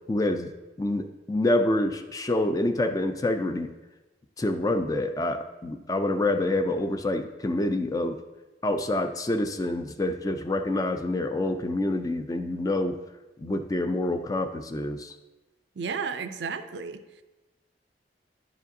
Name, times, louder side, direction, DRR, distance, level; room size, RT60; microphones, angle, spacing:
voice 1, 0.1-0.5 0.8-3.7 4.4-8.2 8.6-13.0 13.4-15.2, left 1 dB, 20° left, 7 dB, 0.3 m, -27 dB
voice 2, 15.8-17.0, right 5 dB, 75° right, 9 dB, 0.5 m, -32 dB
10.0 x 4.9 x 2.7 m, 1.1 s
head